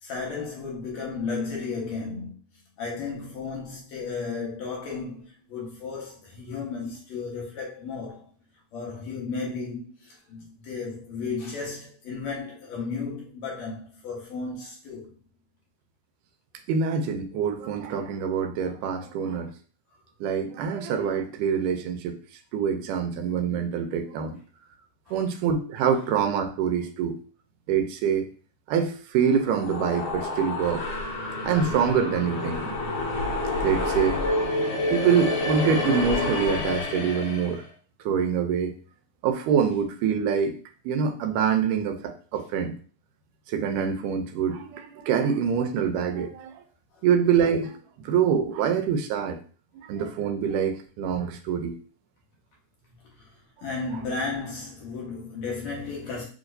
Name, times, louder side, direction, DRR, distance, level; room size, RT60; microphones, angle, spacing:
voice 1, 0.0-2.3 2.8-8.3 8.7-15.2 25.1-25.2 34.7-35.1 53.2-53.3 53.6-56.2, left 4 dB, 65° left, 2.3 m, -34 dB
voice 2, 16.7-19.5 20.2-22.2 22.5-24.4 25.1-27.2 27.7-28.3 28.7-30.8 31.4-33.0 33.5-34.2 34.9-37.6 38.1-38.8 39.2-40.6 40.9-42.8 43.5-46.5 47.0-47.8 48.0-49.4 49.8-51.7, right 7 dB, 80° right, 2.1 m, -25 dB
sound 1, 29.3-37.6, left 2 dB, 85° left, 1.1 m, -28 dB
6.4 x 3.0 x 2.6 m
omnidirectional pair, 3.7 m